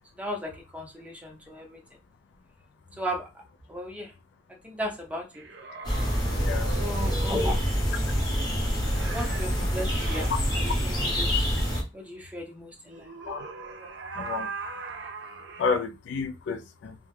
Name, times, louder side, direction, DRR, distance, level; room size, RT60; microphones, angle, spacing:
voice 1, 0.2-1.8 3.0-3.3 3.7-4.1 4.6-5.5 6.7-7.8 9.1-11.3 11.9-13.1, equal, 10° right, 0.6 m, -35 dB
sound 1, 5.3-7.7 8.8-10.3 12.9-15.8, right 4 dB, 70° right, 0.5 m, -40 dB
sound 2, 5.8-11.8, equal, 20° left, 0.9 m, -26 dB
voice 2, 6.4-6.8 13.3-13.5 13.8-13.9 14.2-14.7 15.6-17.0, left 5 dB, 75° left, 0.3 m, -31 dB
2.2 x 2.1 x 3.1 m
head